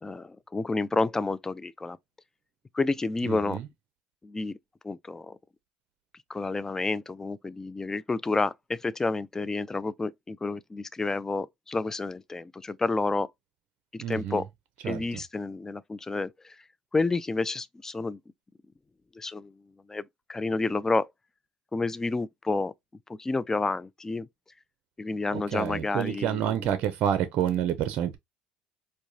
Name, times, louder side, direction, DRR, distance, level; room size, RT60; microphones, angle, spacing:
voice 1, 0.0-2.0 2.7-3.6 4.2-4.6 4.8-5.4 6.3-13.3 13.9-14.5 14.8-16.6 16.9-18.2 19.1-19.5 19.9-21.1 21.7-22.7 23.1-24.3 25.0-26.8, left 3 dB, 20° left, 0.3 m, -30 dB
voice 2, 3.2-3.6 14.0-14.4 14.8-15.2 25.3-28.2, right 10 dB, 60° right, 0.5 m, -28 dB
4.5 x 2.1 x 2.6 m
supercardioid pair, 80°, 3 cm